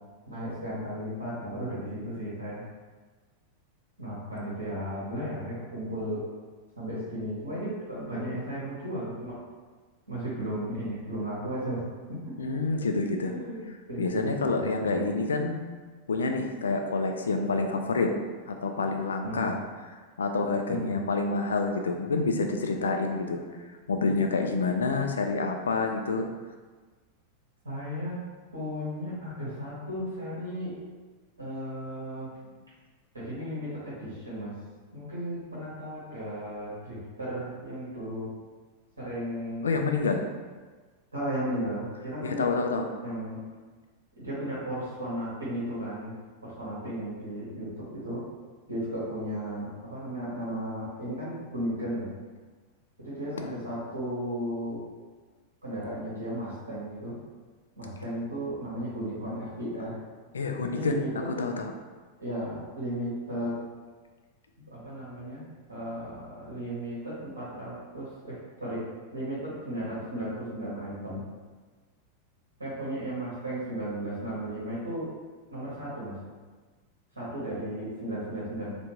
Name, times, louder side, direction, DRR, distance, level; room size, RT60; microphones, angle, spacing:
voice 1, 0.3-2.6 4.0-6.2 6.8-9.4 10.1-11.8 12.1-12.3 13.2-15.0 19.2-19.5 20.7-20.9 27.6-28.2 28.5-30.8 31.4-32.3 33.1-34.5 34.9-38.3 39.0-39.6 41.1-42.5 43.0-43.4 44.2-46.1 46.4-48.2 48.7-52.1 53.0-54.8 55.6-57.2 57.8-59.9 60.7-61.3 62.2-63.6 64.6-68.8 69.1-71.2 72.6-75.1 75.5-76.2 77.1-78.8, equal, 75° right, -8 dB, 1.0 m, -35 dB
voice 2, 12.4-13.3 14.0-15.6 16.1-18.1 18.5-19.6 20.2-23.4 23.9-26.3 39.6-40.3 42.2-42.9 53.4-53.5 60.3-61.0 61.3-61.7, left 3 dB, 70° left, 4 dB, 0.3 m, -28 dB
3.3 x 2.5 x 2.9 m, 1.4 s
figure-of-eight pair, 90°, 0 cm